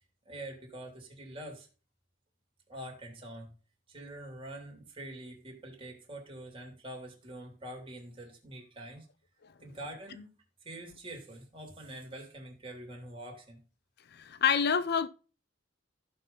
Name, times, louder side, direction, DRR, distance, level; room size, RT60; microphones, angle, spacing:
voice 1, 0.2-1.7 2.7-3.5 3.9-9.1 9.6-10.3 10.6-13.6, right 1 dB, 25° right, 3.0 m, -45 dB
voice 2, 14.1-15.1, left 7 dB, 50° left, 0.5 m, -27 dB
15.0 x 5.7 x 3.9 m
head